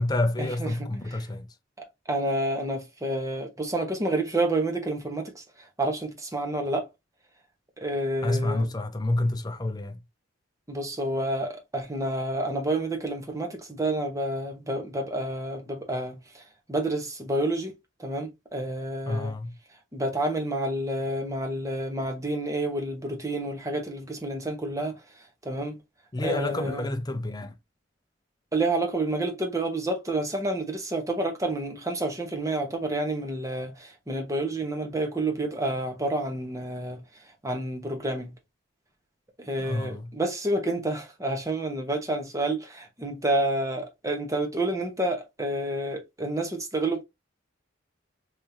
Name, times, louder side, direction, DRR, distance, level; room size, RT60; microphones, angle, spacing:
voice 1, 0.0-1.6 8.2-10.0 19.1-19.6 26.1-27.6 39.6-40.2, left 1 dB, 20° left, 0.5 m, -28 dB
voice 2, 2.1-5.4 5.8-6.9 7.8-8.7 10.7-16.4 16.7-17.7 18.0-19.3 19.9-25.0 25.4-25.8 26.2-26.8 28.5-37.0 37.4-38.3 39.4-47.0, right 1 dB, 15° right, 1.0 m, -29 dB
3.6 x 3.2 x 2.7 m
head